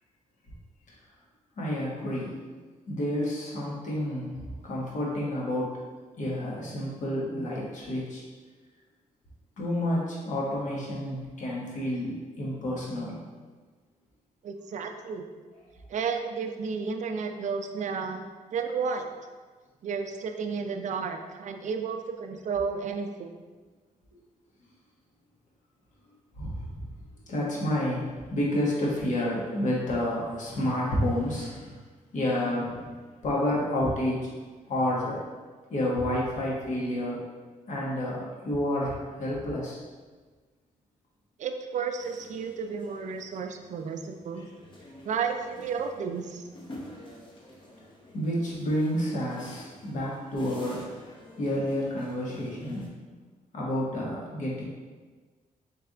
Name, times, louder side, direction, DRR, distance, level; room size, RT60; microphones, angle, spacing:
voice 1, 1.6-2.4 2.9-5.8 6.2-8.2 9.6-13.2 26.4-26.8 27.3-31.8 32.1-32.8 33.2-34.2 34.7-35.2 35.7-37.2 37.7-39.8 48.1-52.9 53.5-54.6, left 1 dB, 60° left, -4 dB, 1.2 m, -30 dB
voice 2, 14.4-15.3 15.9-19.1 19.8-23.4 41.4-44.5 45.0-46.4, right 5 dB, 60° right, 5 dB, 0.4 m, -32 dB
sound 1, 42.0-52.9, left 1 dB, 35° left, 0.8 m, -49 dB
4.0 x 3.3 x 3.7 m, 1.4 s
wide cardioid pair, 140°, 14 cm